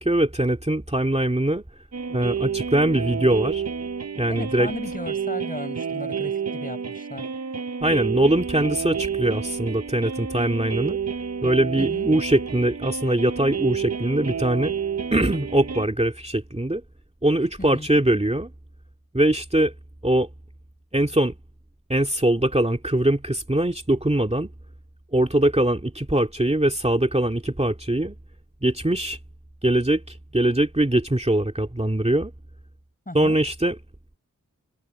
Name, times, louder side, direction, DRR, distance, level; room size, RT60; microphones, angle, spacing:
voice 1, 0.0-1.6 2.1-3.6 4.2-4.7 7.8-11.0 11.4-14.8 15.1-16.8 17.2-18.5 19.1-19.7 20.0-20.3 20.9-21.3 21.9-24.5 25.1-28.2 28.6-29.2 29.6-32.3 33.1-33.8, right 1 dB, 20° right, 2.4 m, -22 dB
sound 1, 1.9-15.9, right 6 dB, 50° right, 0.7 m, -30 dB
voice 2, 4.3-7.3 11.8-12.1 17.6-17.9 33.1-33.4, left 1 dB, 25° left, 6.0 m, -36 dB
wide cardioid pair, 60°, 33 cm